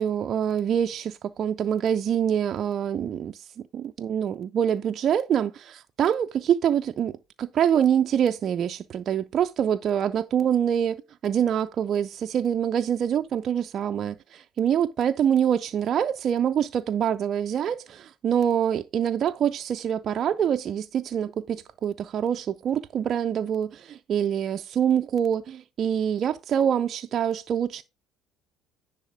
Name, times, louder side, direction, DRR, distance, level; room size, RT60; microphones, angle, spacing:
voice 1, 0.0-3.5 3.7-27.8, right 9 dB, 50° right, 0.4 m, -25 dB
10.0 x 3.5 x 4.9 m
supercardioid pair, 80°, 0 cm